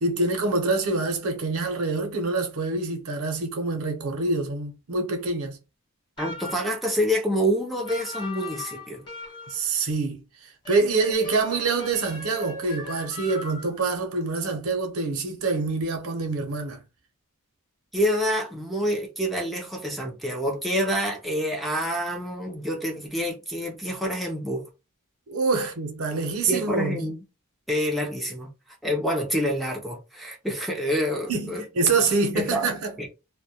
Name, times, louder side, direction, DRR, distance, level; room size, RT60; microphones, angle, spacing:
voice 1, 0.0-5.6 9.5-16.8 25.3-27.0 31.3-32.9, right 3 dB, 70° right, 0.7 m, -26 dB
sound 1, 6.2-6.9 7.9-9.7 10.6-13.8, left 3 dB, 20° left, 1.0 m, -39 dB
voice 2, 6.2-9.0 17.9-24.7 26.5-27.2 27.7-28.5 28.8-31.6 32.3-32.7 33.0-33.1, equal, ahead, 0.4 m, -27 dB
2.2 x 2.1 x 2.7 m
head